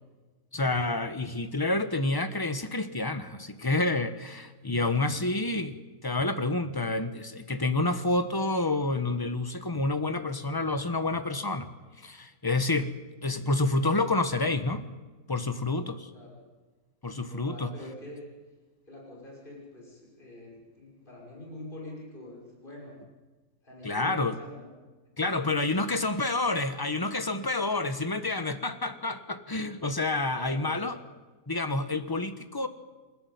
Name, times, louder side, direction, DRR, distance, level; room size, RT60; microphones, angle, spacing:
voice 1, 0.5-11.7 12.0-12.9 13.2-14.9 15.3-16.1 17.0-17.7 23.8-24.4 25.2-31.0 31.5-32.7, left 2 dB, 15° left, 10 dB, 1.1 m, -28 dB
voice 2, 17.3-18.2 18.9-23.0 23.6-24.7 25.1-26.1 30.3-31.0, left 2 dB, 35° left, -2 dB, 6.4 m, -45 dB
28.5 x 12.0 x 9.4 m, 1.3 s
omnidirectional pair, 1.5 m